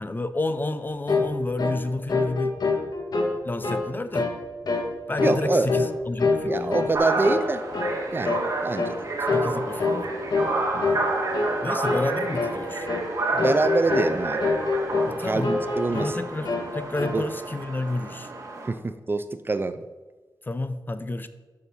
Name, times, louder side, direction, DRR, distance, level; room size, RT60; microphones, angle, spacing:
voice 1, 0.0-2.6 3.4-4.3 5.1-6.8 9.3-10.1 11.6-12.9 15.1-15.6 15.9-18.3 20.4-21.3, left 2 dB, 25° left, 10 dB, 0.7 m, -30 dB
sound 1, 1.1-1.3 1.6-1.8 2.1-3.3 3.6-3.9 4.1-4.4 4.7-4.9 5.2-5.9 6.2-7.0 7.2-7.5 7.7-8.0 8.2-8.5 8.8-9.0 9.3-9.5 9.8-10.0 10.3-10.5 10.8-11.1 11.3-11.5 11.9-12.1 12.4-12.6 12.9-13.1 13.4-14.1 14.4-15.2 15.4-16.2 16.5-17.2, left 3 dB, 65° left, 1.6 m, -25 dB
voice 2, 5.2-5.8 6.5-7.6 8.1-9.0 10.7-11.0 13.3-14.4 15.2-16.2 17.1-17.3 18.7-19.9, right 3 dB, 30° right, 11 dB, 0.5 m, -25 dB
sound 2, 6.9-18.7, right 2 dB, 45° right, 2.1 m, -30 dB
Trumpet, 10.2-16.0, right 2 dB, 10° right, 1.5 m, -44 dB
12.5 x 6.4 x 4.2 m, 1.3 s
wide cardioid pair, 90°, 7 cm